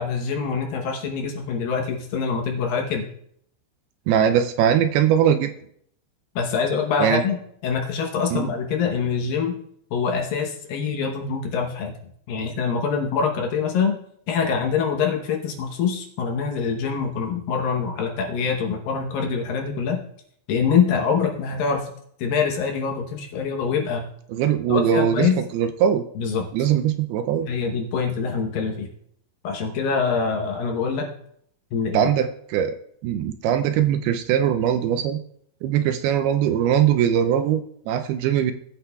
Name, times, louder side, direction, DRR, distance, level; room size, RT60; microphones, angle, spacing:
voice 1, 0.0-3.1 6.4-7.4 7.6-9.5 9.9-12.0 12.3-14.0 14.3-20.0 20.5-21.9 22.2-24.0 24.7-25.4 26.2-26.5 27.5-28.9 29.4-31.1 31.7-32.1, left 6 dB, 70° left, 2 dB, 2.4 m, -24 dB
voice 2, 4.1-5.5 7.0-7.2 8.3-8.5 24.3-26.0 26.5-27.5 31.9-32.8 33.0-35.2 35.6-38.5, right 9 dB, 80° right, 7 dB, 2.4 m, -21 dB
18.0 x 8.3 x 2.3 m, 0.68 s
omnidirectional pair, 4.7 m